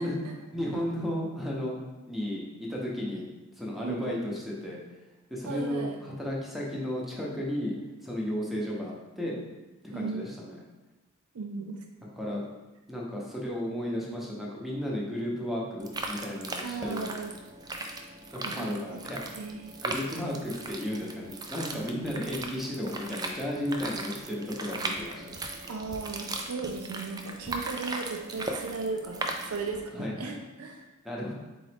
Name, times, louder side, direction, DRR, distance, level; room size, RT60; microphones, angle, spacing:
voice 1, 0.0-0.3 3.8-4.2 5.5-6.0 9.9-10.2 11.3-11.8 16.6-17.3 18.4-19.0 19.4-19.8 21.9-22.2 25.7-30.9, right 4 dB, 75° right, 3 dB, 0.5 m, -36 dB
voice 2, 0.5-1.8 2.1-3.3 3.5-4.8 5.3-7.7 8.0-9.4 9.9-10.6 12.2-12.5 12.9-17.3 18.3-19.2 19.7-25.4 29.9-30.4 31.0-31.3, equal, ahead, -4 dB, 0.8 m, -34 dB
sound 1, 15.8-29.8, right 2 dB, 20° right, 0.3 m, -38 dB
3.9 x 3.8 x 3.4 m, 1.1 s
head